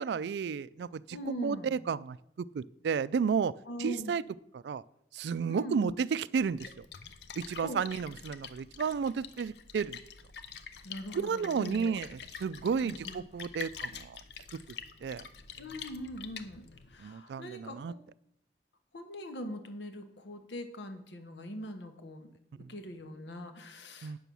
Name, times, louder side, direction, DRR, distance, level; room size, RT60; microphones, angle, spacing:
voice 1, 0.0-1.2 1.4-3.5 3.8-4.2 4.5-4.8 5.1-6.9 7.4-10.0 11.1-14.2 15.0-15.3 17.0-17.9 22.6-22.7 24.0-24.2, right 6 dB, 75° right, 19 dB, 0.3 m, -32 dB
voice 2, 1.1-1.8 3.7-4.2 5.5-6.0 7.6-7.8 10.8-12.0 12.8-13.2 15.6-18.0 18.9-22.3 22.6-24.2, equal, 90° left, 7 dB, 1.1 m, -41 dB
Splash splatter, 6.4-17.0, left 6 dB, 70° left, 0.7 m, -46 dB
9.0 x 6.1 x 6.9 m, 0.77 s
head